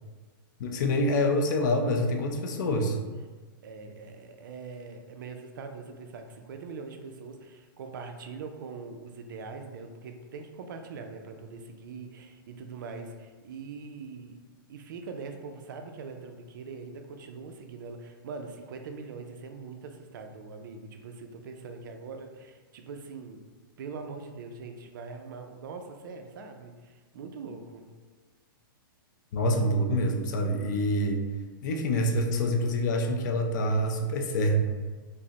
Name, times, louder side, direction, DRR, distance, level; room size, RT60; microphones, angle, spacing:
voice 1, 0.6-3.0 29.3-31.2 31.6-34.6, left 1 dB, 55° left, 3 dB, 0.5 m, -26 dB
voice 2, 3.6-14.4 14.7-23.4 23.8-27.9, right 4 dB, 65° right, 5 dB, 0.4 m, -42 dB
5.1 x 2.0 x 2.8 m, 1.4 s
hypercardioid pair, 155°, 12 cm